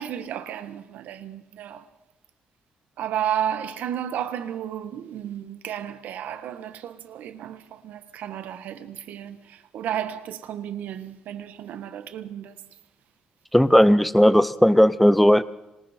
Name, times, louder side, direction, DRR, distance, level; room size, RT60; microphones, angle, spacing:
voice 1, 0.0-1.9 3.0-12.7, right 10 dB, 80° right, 1.6 m, -33 dB
voice 2, 13.5-15.4, equal, ahead, 0.9 m, -16 dB
26.5 x 25.0 x 4.5 m
cardioid pair, 70°, 3 cm